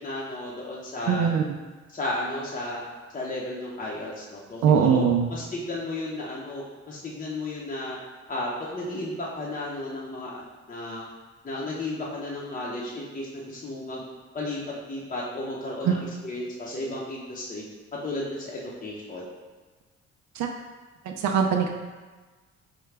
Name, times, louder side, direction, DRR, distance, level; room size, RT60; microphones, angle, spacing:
voice 1, 0.0-1.3 1.9-2.8 3.1-5.0 5.3-8.0 8.3-11.1 11.4-14.0 14.3-14.6 14.9-17.6 18.0-19.2, left 2 dB, 25° left, -5 dB, 0.7 m, -33 dB
voice 2, 1.1-1.6 4.6-5.3 15.9-16.0 20.4-20.5 21.2-21.7, right 7 dB, 70° right, 2 dB, 0.4 m, -21 dB
4.8 x 2.2 x 3.2 m, 1.3 s
cardioid pair, 90°, 30 cm